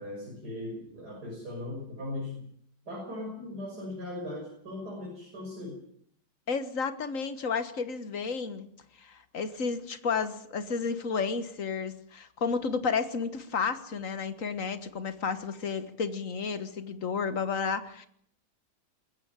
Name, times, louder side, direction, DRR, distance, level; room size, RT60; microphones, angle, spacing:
voice 1, 0.0-2.5 2.9-5.8, left 1 dB, 50° right, -2 dB, 6.8 m, -38 dB
voice 2, 6.5-8.7 9.0-18.1, left 5 dB, 40° left, 11 dB, 1.7 m, -32 dB
21.0 x 16.0 x 9.0 m, 0.66 s
omnidirectional pair, 2.3 m